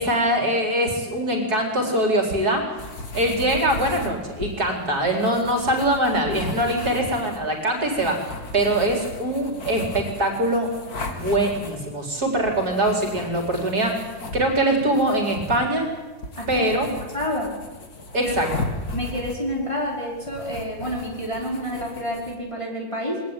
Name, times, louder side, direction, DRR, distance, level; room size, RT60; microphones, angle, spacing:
voice 1, 0.0-2.6 3.1-10.7 11.1-14.0 14.3-15.9 16.5-16.9 18.1-18.5, right 1 dB, 50° right, 2 dB, 4.7 m, -23 dB
sound 1, 2.8-22.3, left 2 dB, 50° left, 2.7 m, -37 dB
voice 2, 17.1-17.6 18.2-18.3 18.9-23.2, equal, 15° left, -2 dB, 5.2 m, -28 dB
22.0 x 19.0 x 9.2 m, 1.2 s
omnidirectional pair, 2.2 m